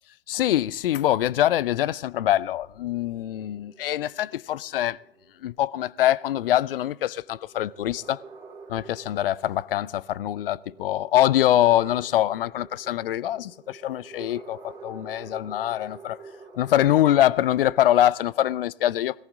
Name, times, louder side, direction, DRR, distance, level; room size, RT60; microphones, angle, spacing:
voice 1, 0.3-5.0 5.4-8.2 8.7-16.2 16.5-19.2, left 12 dB, 65° left, 0.5 m, -24 dB
sound 1, 0.7-18.1, right 4 dB, 10° right, 2.9 m, -49 dB
17.5 x 15.0 x 3.7 m
hypercardioid pair, 115°, 31 cm